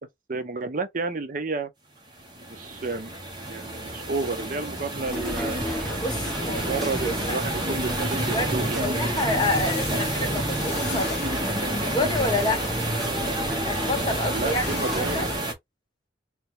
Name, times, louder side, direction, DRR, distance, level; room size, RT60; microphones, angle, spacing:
voice 1, 0.3-1.7 2.5-3.1 3.5-5.6 6.4-9.0 9.9-10.1 14.3-15.2, right 3 dB, 45° right, 0.6 m, -31 dB
sound 1, 2.2-15.5, right 1 dB, 25° right, 1.3 m, -30 dB
sound 2, 5.1-15.4, equal, ahead, 1.1 m, -32 dB
voice 2, 6.0-6.9 7.2-7.4 8.2-11.2 11.8-12.7 13.7-15.2, left 2 dB, 20° left, 0.9 m, -28 dB
sound 3, 9.3-10.1 10.5-11.3 11.9-13.1 14.4-14.9, left 5 dB, 55° left, 1.1 m, -39 dB
3.3 x 3.3 x 3.1 m
head